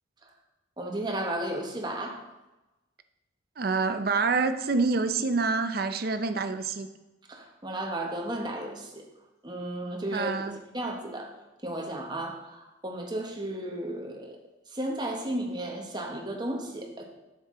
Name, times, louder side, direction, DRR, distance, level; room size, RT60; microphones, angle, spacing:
voice 1, 0.8-2.2 7.3-9.0 9.4-11.3 11.6-14.4 14.7-17.1, right 1 dB, 25° right, 1 dB, 1.1 m, -34 dB
voice 2, 3.6-6.9 10.1-10.6, right 4 dB, 55° right, 9 dB, 0.5 m, -27 dB
8.1 x 7.4 x 3.7 m, 1.0 s
head